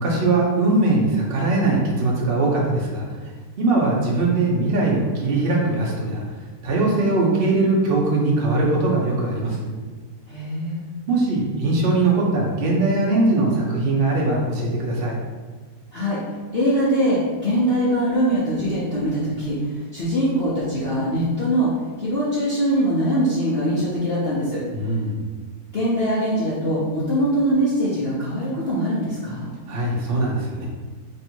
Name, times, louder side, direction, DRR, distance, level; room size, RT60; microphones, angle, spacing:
voice 1, 0.0-6.2 6.6-9.6 11.1-15.2 24.7-25.2 29.7-30.7, right 2 dB, 65° right, -3 dB, 0.5 m, -21 dB
voice 2, 10.3-10.8 15.9-16.2 16.5-19.6 19.9-21.7 22.0-24.6 25.7-29.5, equal, 75° left, -8 dB, 0.5 m, -22 dB
3.2 x 2.7 x 4.4 m, 1.4 s
omnidirectional pair, 2.1 m